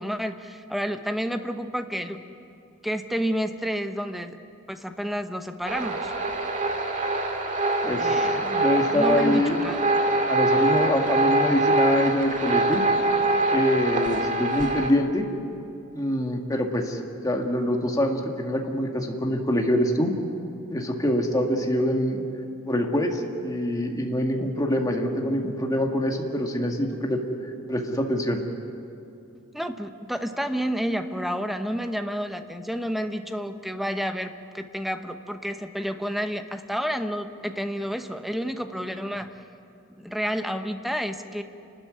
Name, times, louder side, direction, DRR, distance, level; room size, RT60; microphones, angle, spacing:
voice 1, 0.0-2.2 2.8-4.4 4.7-6.1 7.9-8.4 8.9-9.8 29.5-39.3 40.0-41.4, equal, ahead, 7 dB, 0.9 m, -30 dB
sound 1, 5.6-14.9, right 2 dB, 35° right, 2.0 m, -24 dB
voice 2, 7.8-9.6 10.3-12.8 13.5-15.3 15.9-20.1 20.7-22.2 22.7-27.2 27.7-28.4, equal, 15° left, 2 dB, 2.0 m, -25 dB
29.0 x 13.0 x 9.6 m, 2.7 s
head